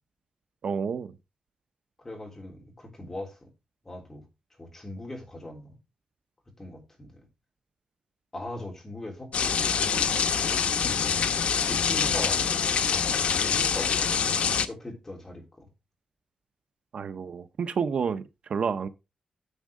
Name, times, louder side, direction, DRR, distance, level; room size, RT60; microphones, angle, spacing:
voice 1, 0.6-1.1 16.9-18.2 18.5-18.9, right 6 dB, 60° right, 0.7 m, -29 dB
voice 2, 2.0-3.4 3.8-4.2 4.6-5.7 6.6-7.1 8.3-10.1 10.5-11.0 11.7-12.4 13.4-14.1 14.7-15.7, left 1 dB, 20° left, 3.4 m, -40 dB
sound 1, 9.3-14.7, left 6 dB, 80° left, 0.9 m, -25 dB
10.0 x 7.4 x 3.6 m
wide cardioid pair, 160°, 2 cm